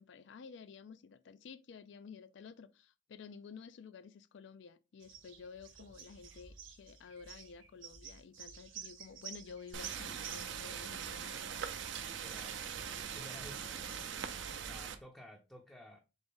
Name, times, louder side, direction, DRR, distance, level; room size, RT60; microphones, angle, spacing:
voice 1, 0.0-11.5, left 5 dB, 65° left, 0.4 m, -52 dB
sound 1, 5.0-14.2, right 7 dB, 90° right, 0.9 m, -52 dB
sound 2, 9.7-15.0, right 7 dB, 70° right, 0.5 m, -42 dB
voice 2, 12.0-12.6 12.9-14.1 14.7-16.0, left 1 dB, 5° left, 0.5 m, -54 dB
4.0 x 3.5 x 3.6 m
head